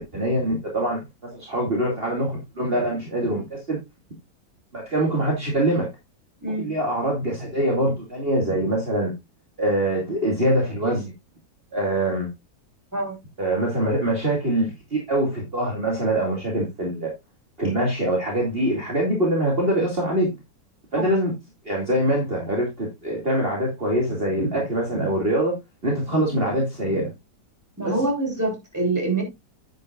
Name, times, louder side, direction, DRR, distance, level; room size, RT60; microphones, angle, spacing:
voice 1, 0.1-1.0 1.3-3.8 4.7-5.9 6.6-9.1 9.6-11.1 11.7-12.3 13.4-17.1 17.6-20.3 20.9-21.3 21.6-25.5 25.8-27.1 27.8-27.9, right 1 dB, 30° right, 2.7 m, -24 dB
voice 2, 27.8-29.2, right 2 dB, 10° right, 4.2 m, -25 dB
9.7 x 9.7 x 2.4 m
omnidirectional pair, 1.9 m